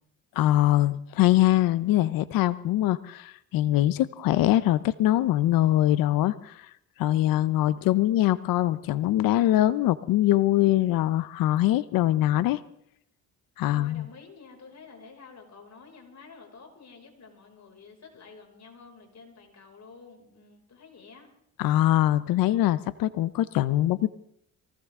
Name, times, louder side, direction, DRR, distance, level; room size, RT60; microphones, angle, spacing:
voice 1, 0.4-6.7 7.0-12.6 13.6-14.1 21.6-24.1, left 14 dB, 85° left, 16 dB, 0.7 m, -23 dB
voice 2, 13.6-21.3, left 4 dB, 55° left, 2 dB, 5.7 m, -50 dB
23.0 x 17.0 x 3.7 m, 0.72 s
supercardioid pair, 70°, 33 cm